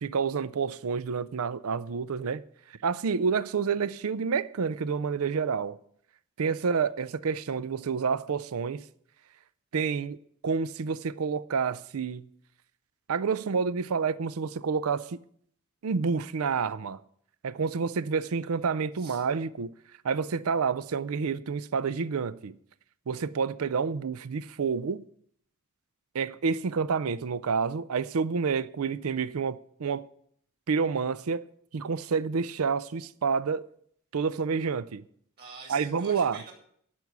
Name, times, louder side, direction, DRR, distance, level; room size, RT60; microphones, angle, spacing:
voice 1, 0.0-2.4 2.8-5.8 6.4-8.8 9.7-10.2 10.4-12.3 13.1-15.2 15.8-17.0 17.4-19.7 20.0-22.6 23.1-25.0 26.1-30.0 30.7-31.5 31.7-33.6 34.1-35.0 35.7-36.4, right 5 dB, 70° right, 0.5 m, -29 dB
voice 2, 18.1-18.5 18.9-19.2 35.4-36.5, right 4 dB, 45° right, 4.1 m, -47 dB
12.0 x 6.1 x 8.0 m
head